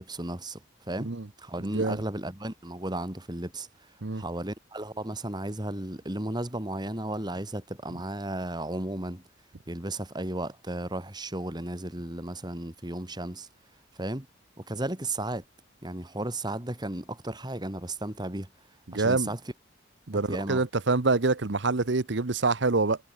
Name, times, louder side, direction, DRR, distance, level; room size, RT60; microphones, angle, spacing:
voice 1, 0.0-1.1 1.4-9.2 9.7-13.5 13.9-14.3 14.6-15.4 15.8-18.5 18.9-19.4 20.3-20.6, right 1 dB, 20° right, 2.3 m, -34 dB
voice 2, 18.9-19.3 20.1-23.0, right 3 dB, 60° right, 1.0 m, -26 dB
head